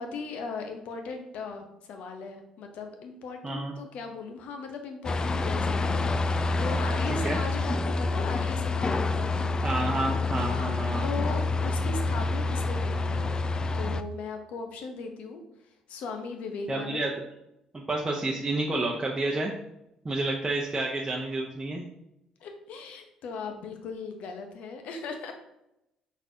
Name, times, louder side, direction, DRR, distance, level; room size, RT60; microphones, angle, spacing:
voice 1, 0.0-9.5 10.5-13.3 13.7-15.4 15.9-17.1 22.4-25.3, left 4 dB, 70° left, 5 dB, 0.7 m, -38 dB
voice 2, 3.4-3.7 7.1-7.4 9.6-11.1 16.7-17.1 17.7-19.5 20.0-21.8, right 2 dB, 25° right, -2 dB, 0.7 m, -30 dB
sound 1, 5.0-14.0, left 3 dB, 30° left, 0.3 m, -27 dB
4.5 x 4.0 x 2.7 m, 0.84 s
hypercardioid pair, 60°, 2 cm